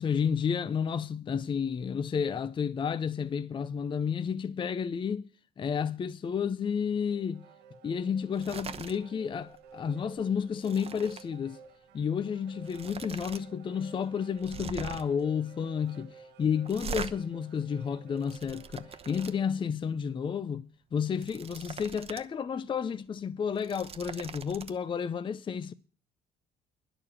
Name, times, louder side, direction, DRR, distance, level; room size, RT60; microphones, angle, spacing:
voice 1, 0.0-5.3 5.6-7.4 7.8-11.6 11.9-25.7, left 7 dB, 30° left, 0.5 m, -31 dB
sound 1, 7.0-19.6, right 5 dB, 90° right, 1.3 m, -53 dB
sound 2, 8.3-9.0 9.3-9.6 9.9-11.3 12.2-12.3 12.6-13.4 13.7-13.8 14.4-15.2 16.6-17.1 17.9-19.3 21.0-22.3 22.6-22.7 23.4-24.7, right 6 dB, 35° right, 1.0 m, -42 dB
11.0 x 7.0 x 8.6 m
cardioid pair, 110°, 17 cm